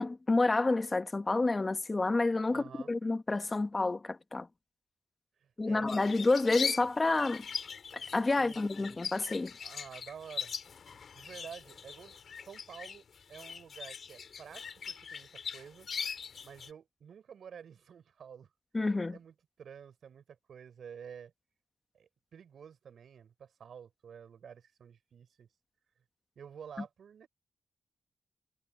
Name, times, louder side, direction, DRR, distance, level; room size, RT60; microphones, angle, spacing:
voice 1, 0.0-4.5 5.6-7.4 7.9-9.5 18.7-19.2, left 3 dB, 35° left, 1.6 m, -29 dB
voice 2, 2.5-2.9 5.4-5.9 8.4-9.0 9.6-10.5 10.8-13.0 13.3-15.9 16.4-18.5 19.1-21.3 21.9-25.5 26.4-27.3, right 7 dB, 80° right, 5.8 m, -50 dB
birds-inbigcage, 5.9-16.7, left 6 dB, 70° left, 5.2 m, -41 dB
cardioid pair, 60°, 0 cm